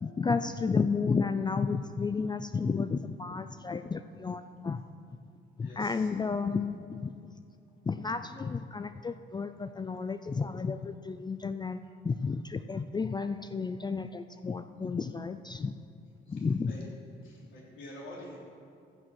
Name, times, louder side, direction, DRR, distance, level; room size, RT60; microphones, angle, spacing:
voice 1, 0.0-4.8 5.6-7.1 7.9-11.8 12.0-15.7 16.3-16.7, left 5 dB, 20° left, 10 dB, 0.4 m, -32 dB
voice 2, 5.6-6.3 11.8-11.9 16.2-16.8 17.2-18.4, left 1 dB, 75° left, -4 dB, 3.5 m, -48 dB
14.5 x 6.4 x 6.2 m, 2.4 s
cardioid pair, 90°, 20 cm